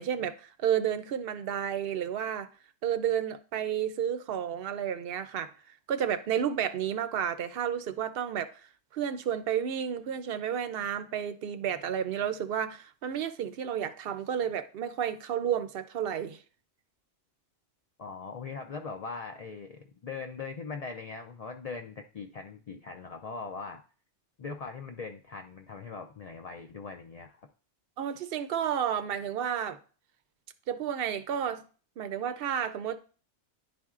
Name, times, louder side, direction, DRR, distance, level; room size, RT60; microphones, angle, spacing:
voice 1, 0.0-2.5 2.8-5.5 5.9-8.6 8.9-16.4 28.0-29.8 30.7-31.6 32.0-33.0, right 9 dB, 65° right, 0.7 m, -31 dB
voice 2, 18.0-23.8 24.4-27.5, left 4 dB, 50° left, 0.4 m, -40 dB
10.5 x 4.3 x 2.4 m
omnidirectional pair, 1.2 m